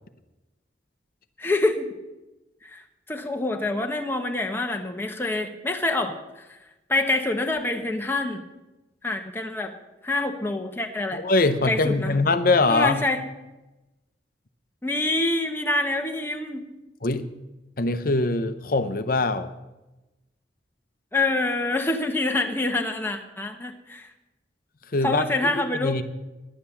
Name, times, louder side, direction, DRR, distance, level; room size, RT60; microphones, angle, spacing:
voice 1, 1.4-1.9 2.6-2.8 3.1-6.6 6.9-8.4 9.0-9.7 10.0-11.2 11.7-12.1 12.7-13.2 14.8-16.7 21.1-24.1 25.0-26.0, left 2 dB, 10° left, 3 dB, 0.9 m, -26 dB
voice 2, 11.1-13.0 17.0-17.3 17.8-19.5 24.9-25.2 25.6-26.0, left 3 dB, 50° left, 11 dB, 0.8 m, -22 dB
11.0 x 9.6 x 7.1 m, 1.0 s
head